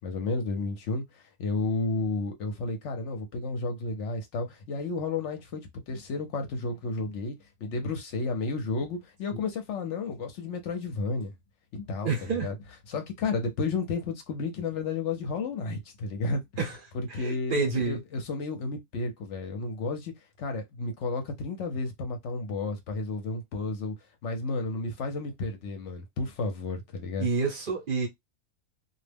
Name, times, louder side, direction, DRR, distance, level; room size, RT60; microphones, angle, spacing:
voice 1, 0.0-5.6 5.9-7.3 7.6-11.3 11.7-12.5 12.9-16.4 16.9-20.1 20.4-23.9 24.2-27.3, left 3 dB, 65° left, 0.9 m, -32 dB
voice 2, 12.0-12.5 16.6-16.8 17.1-18.0 27.2-28.1, right 4 dB, 50° right, 0.7 m, -28 dB
2.4 x 2.1 x 3.2 m
omnidirectional pair, 1.5 m